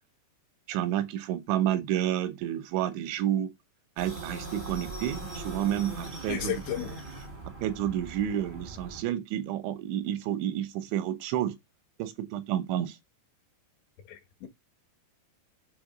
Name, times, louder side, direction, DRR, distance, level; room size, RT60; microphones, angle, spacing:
voice 1, 0.7-3.5 4.0-6.5 7.6-11.6 12.0-13.0, right 11 dB, 85° right, 3.2 m, -30 dB
sound 1, 4.0-9.0, right 2 dB, 35° right, 0.7 m, -40 dB
voice 2, 6.3-6.9 14.1-14.5, left 10 dB, 75° left, 3.5 m, -33 dB
7.4 x 3.5 x 4.9 m
omnidirectional pair, 5.3 m